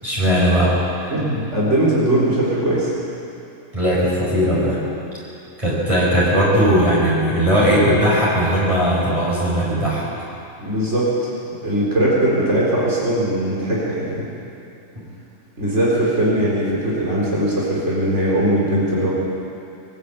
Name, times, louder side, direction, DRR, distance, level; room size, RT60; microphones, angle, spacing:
voice 1, 0.0-1.1 3.7-4.8 5.6-10.1, equal, 25° right, -7 dB, 5.2 m, -18 dB
voice 2, 1.1-2.9 10.6-11.3 11.6-14.3 15.6-19.1, right 1 dB, 60° right, -6 dB, 4.4 m, -20 dB
22.5 x 14.5 x 8.6 m, 2.7 s
omnidirectional pair, 1.4 m